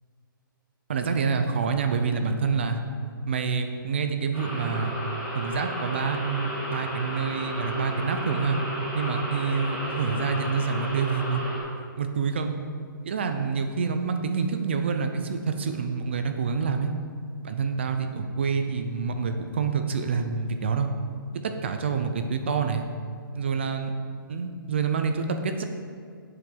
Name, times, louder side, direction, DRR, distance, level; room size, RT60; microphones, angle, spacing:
voice 1, 0.9-2.8 3.3-4.9 5.3-8.6 8.9-11.4 12.0-12.5 13.0-16.9 17.4-20.9 21.4-22.8 23.3-23.9 24.3-25.6, right 5 dB, 30° right, 6 dB, 0.5 m, -27 dB
sound 1, 4.3-11.6, equal, 5° right, 1.8 m, -33 dB
7.8 x 5.8 x 6.6 m, 2.1 s
hypercardioid pair, 175°, 12 cm